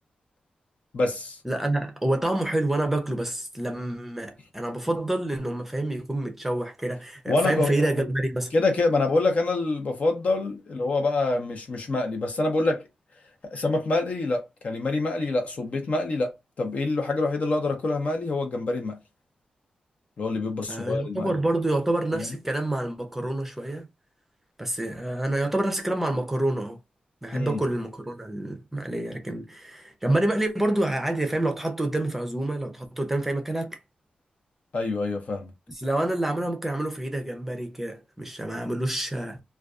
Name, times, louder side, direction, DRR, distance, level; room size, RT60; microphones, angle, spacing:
voice 1, 0.9-1.4 7.3-8.1 8.5-12.8 13.5-16.3 16.6-19.0 20.2-21.4 22.2-22.3 27.3-27.6 34.7-35.5, left 2 dB, 55° left, 0.7 m, -26 dB
voice 2, 1.4-8.6 20.7-23.9 24.6-26.8 27.2-33.8 35.7-39.4, right 1 dB, 10° right, 0.6 m, -27 dB
2.5 x 2.3 x 2.4 m
wide cardioid pair, 95°, 3 cm